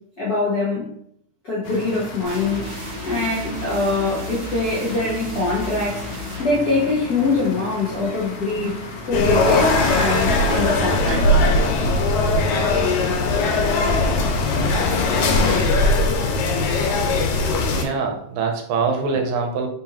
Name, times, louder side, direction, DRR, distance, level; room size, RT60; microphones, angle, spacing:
voice 1, 0.2-0.9 1.4-2.7 3.0-6.1 6.4-8.8 9.1-11.4, left 3 dB, 55° left, -6 dB, 1.0 m, -23 dB
sound 1, 1.6-15.6, left 4 dB, 75° left, 1.4 m, -30 dB
sound 2, 2.2-7.9, right 1 dB, 55° right, 1.4 m, -35 dB
sound 3, 9.1-17.8, left 2 dB, 90° left, 2.1 m, -20 dB
voice 2, 17.7-19.7, right 4 dB, 80° right, 3 dB, 2.0 m, -23 dB
4.4 x 3.9 x 2.9 m, 0.71 s
omnidirectional pair, 3.3 m